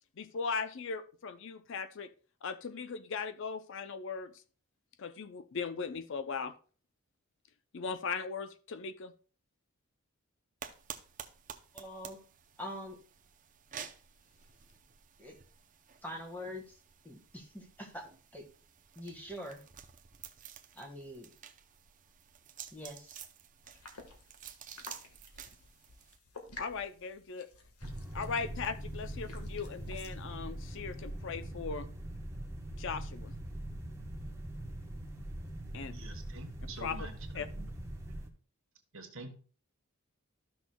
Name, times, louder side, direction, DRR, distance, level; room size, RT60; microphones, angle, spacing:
voice 1, 0.2-2.1 2.4-4.3 5.0-6.5 7.7-9.1 26.6-27.5 28.1-31.9 32.8-33.3 35.7-36.0 36.8-37.0 37.3-37.5, left 5 dB, 55° left, 11 dB, 0.5 m, -38 dB
sound 1, 10.6-26.2, right 8 dB, 35° right, 0.6 m, -51 dB
voice 2, 11.7-12.2 12.6-13.0 15.2-15.4 16.0-16.8 17.0-18.4 18.9-19.6 20.7-21.3 22.7-23.2, equal, 10° left, 2 dB, 1.5 m, -44 dB
sound 2, 23.6-30.2, left 3 dB, 85° left, 1.5 m, -53 dB
sound 3, 27.8-38.3, right 1 dB, 10° right, 1.0 m, -42 dB
voice 3, 35.9-37.7 38.9-39.3, right 2 dB, 60° right, 5 dB, 1.4 m, -47 dB
13.5 x 6.1 x 2.2 m, 0.40 s
head